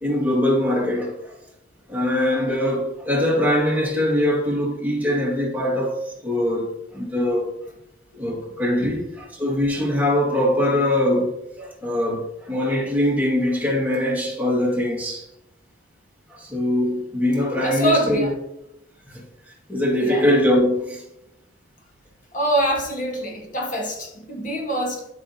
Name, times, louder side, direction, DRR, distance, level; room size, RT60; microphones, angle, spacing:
voice 1, 0.0-1.2 1.9-7.5 8.1-11.3 11.6-15.3 16.3-18.3 19.1-19.2 19.7-21.0, left 1 dB, 10° right, 2.0 m, -22 dB
voice 2, 17.6-18.3 20.0-20.3 22.3-25.1, right 1 dB, 45° left, 1.5 m, -24 dB
12.5 x 5.5 x 2.8 m
head